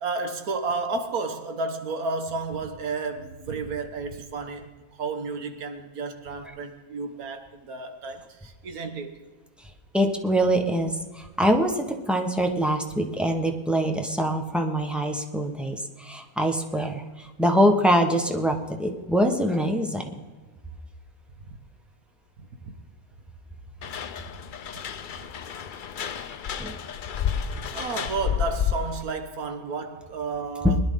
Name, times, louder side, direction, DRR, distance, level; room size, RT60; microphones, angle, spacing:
voice 1, 0.0-9.2 22.4-22.8 24.7-24.8 27.3-30.8, right 4 dB, 75° right, 1.6 m, -32 dB
voice 2, 9.9-20.2 26.6-26.7, equal, ahead, 0.9 m, -24 dB
sound 1, 23.8-29.0, left 8 dB, 60° left, 0.5 m, -31 dB
21.0 x 10.5 x 3.7 m
omnidirectional pair, 1.6 m